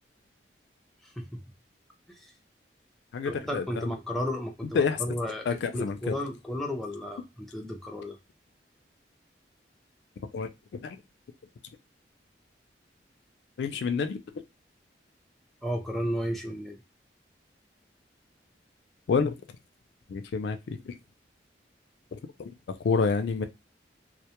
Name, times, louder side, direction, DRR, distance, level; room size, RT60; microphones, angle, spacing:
voice 1, 1.0-1.4 2.1-2.3 3.2-8.2 15.6-16.8, equal, ahead, 0.4 m, -33 dB
voice 2, 3.1-3.9 4.7-5.0 5.5-6.2 10.3-10.5 10.8-11.0 13.6-14.2 19.1-19.3 20.1-20.9 22.1-22.5 22.8-23.4, left 5 dB, 70° left, 0.3 m, -28 dB
2.1 x 2.1 x 2.8 m
head